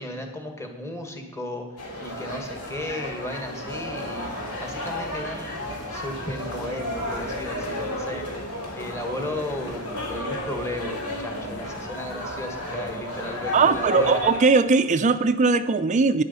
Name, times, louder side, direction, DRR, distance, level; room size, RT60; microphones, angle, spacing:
voice 1, 0.0-1.6 2.0-4.3 4.6-8.2 8.7-14.2, left 1 dB, 15° left, 4 dB, 1.6 m, -35 dB
sound 1, 1.8-14.4, left 1 dB, 80° left, 3.4 m, -32 dB
voice 2, 13.5-16.2, right 4 dB, 35° right, 11 dB, 0.4 m, -19 dB
11.5 x 9.7 x 5.4 m, 1.2 s
head